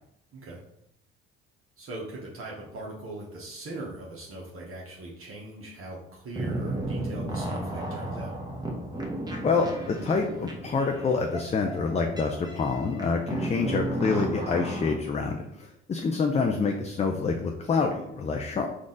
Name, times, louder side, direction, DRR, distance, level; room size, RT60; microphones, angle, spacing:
voice 1, 1.8-8.3, right 2 dB, 45° right, -3 dB, 1.0 m, -40 dB
sound 1, 6.3-14.9, right 1 dB, 15° right, 1.0 m, -34 dB
voice 2, 9.4-18.7, left 4 dB, 25° left, 3 dB, 0.4 m, -27 dB
3.8 x 2.5 x 3.8 m, 0.79 s
hypercardioid pair, 60°, 29 cm